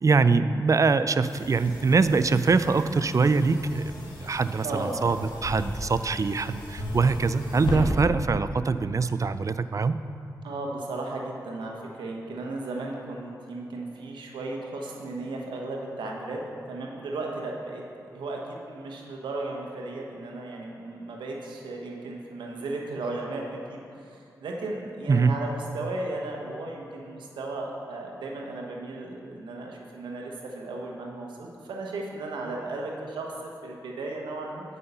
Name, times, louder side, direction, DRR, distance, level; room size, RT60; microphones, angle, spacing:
voice 1, 0.0-3.9 4.2-10.0 25.1-25.4, right 4 dB, 45° right, 13 dB, 0.4 m, -23 dB
sound 1, 1.3-7.8, left 1 dB, 85° left, 1.9 m, -37 dB
voice 2, 4.6-5.1 10.4-16.4 16.7-17.8 18.1-34.6, right 2 dB, 90° right, 0 dB, 1.1 m, -35 dB
9.3 x 5.5 x 5.5 m, 2.5 s
supercardioid pair, 40°, 8 cm